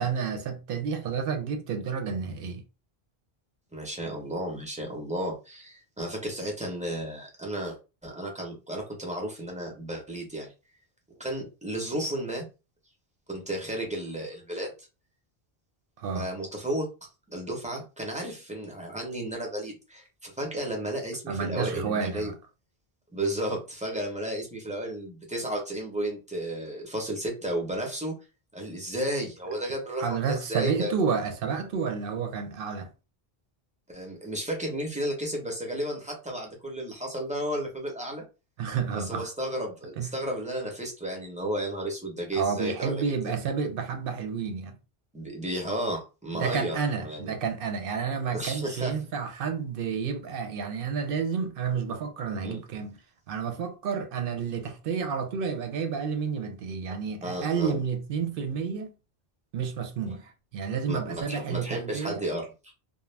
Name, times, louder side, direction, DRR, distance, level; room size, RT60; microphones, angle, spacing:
voice 1, 0.0-2.6 16.0-16.3 21.3-22.4 30.0-32.9 38.6-39.3 40.0-40.1 42.3-44.8 46.3-53.0 53.3-58.9 59.5-62.2, right 6 dB, 65° right, 0.7 m, -30 dB
voice 2, 3.7-7.8 8.0-10.5 11.2-12.4 13.3-14.7 16.1-16.9 17.3-22.3 23.1-28.2 28.5-30.9 33.9-38.2 38.9-43.0 45.1-47.4 48.3-49.0 52.4-52.6 57.2-57.8 60.9-62.7, right 1 dB, 10° right, 0.6 m, -33 dB
2.4 x 2.0 x 3.2 m
omnidirectional pair, 1.0 m